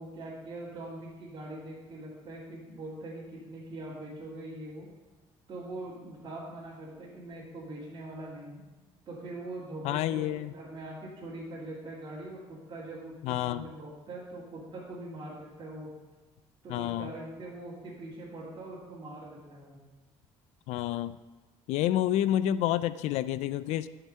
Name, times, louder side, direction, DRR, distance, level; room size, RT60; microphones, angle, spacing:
voice 1, 0.0-4.9 5.5-8.6 9.0-15.9 16.6-19.8, right 2 dB, 40° right, -9 dB, 3.1 m, -42 dB
voice 2, 9.8-10.5 13.2-13.7 16.7-17.1 20.7-21.2 21.7-23.9, left 12 dB, 80° left, 15 dB, 0.5 m, -29 dB
12.0 x 5.9 x 5.5 m, 1.2 s
cardioid pair, 125°, 11 cm